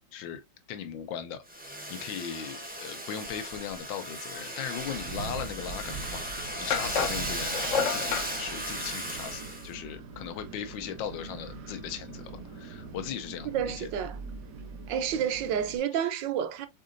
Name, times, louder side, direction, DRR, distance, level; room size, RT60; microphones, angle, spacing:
voice 1, 0.1-0.4 0.7-1.4 1.9-6.3 6.6-13.5 13.8-13.9, left 9 dB, 80° left, 1.4 m, -38 dB
Domestic sounds home sounds, 1.5-9.7, right 1 dB, 10° right, 0.5 m, -36 dB
Wind, 4.8-15.8, right 4 dB, 60° right, 1.0 m, -42 dB
sound 1, 5.9-6.0 6.7-8.3, left 7 dB, 60° left, 0.8 m, -29 dB
voice 2, 13.4-14.2 14.9-16.7, right 8 dB, 75° right, 1.4 m, -30 dB
5.4 x 3.8 x 2.5 m
omnidirectional pair, 2.1 m